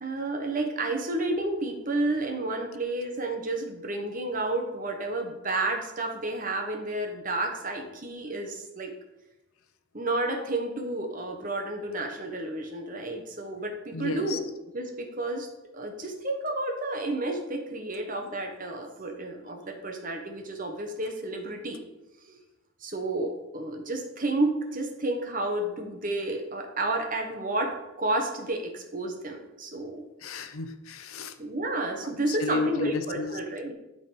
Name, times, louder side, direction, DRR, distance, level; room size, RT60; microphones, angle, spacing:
voice 1, 0.0-8.9 9.9-14.4 14.7-15.5 15.7-21.8 22.2-22.4 22.8-30.0 31.4-33.7, right 2 dB, 40° right, 3 dB, 1.3 m, -31 dB
voice 2, 13.9-14.4 30.2-31.3 32.3-33.4, left 3 dB, 80° left, 10 dB, 0.7 m, -32 dB
12.0 x 4.1 x 5.2 m, 0.99 s
head